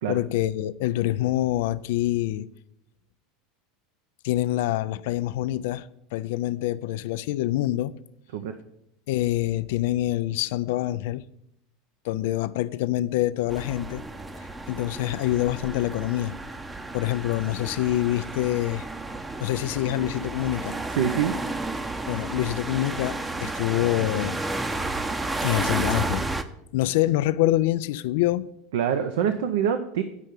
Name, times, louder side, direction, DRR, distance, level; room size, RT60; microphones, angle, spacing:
voice 1, 0.1-2.5 4.2-7.9 9.1-11.2 12.0-14.0 14.7-16.4 16.9-18.9 19.4-20.8 22.1-24.4 25.4-26.3 26.7-28.5, left 15 dB, 65° left, 0.4 m, -26 dB
sound 1, 13.5-26.4, right 2 dB, 15° right, 0.7 m, -32 dB
voice 2, 20.9-21.3 28.7-30.0, right 8 dB, 70° right, 0.6 m, -25 dB
8.3 x 5.3 x 7.5 m
hypercardioid pair, 80°, 0 cm